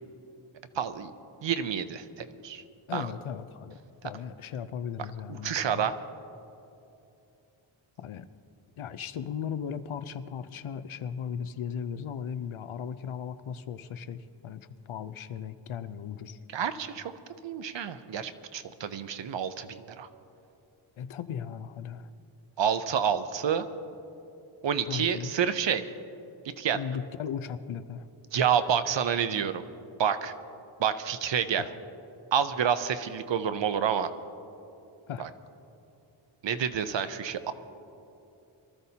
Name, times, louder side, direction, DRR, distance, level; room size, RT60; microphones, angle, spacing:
voice 1, 0.7-1.1 1.4-2.6 2.9-3.1 5.3-6.0 16.5-17.1 17.4-20.1 22.6-23.7 24.6-25.9 26.6-26.8 28.3-29.6 30.0-30.3 30.8-31.6 32.3-34.1 35.2-35.3 36.4-37.5, right 8 dB, 60° right, 11 dB, 0.7 m, -28 dB
voice 2, 2.9-3.8 4.0-5.9 8.0-8.3 8.8-16.4 21.0-22.1 24.9-25.3 26.7-28.1 31.6-31.7 35.1-35.3, left 7 dB, 75° left, 12 dB, 0.7 m, -37 dB
23.5 x 14.0 x 2.8 m, 2.9 s
wide cardioid pair, 180°, 49 cm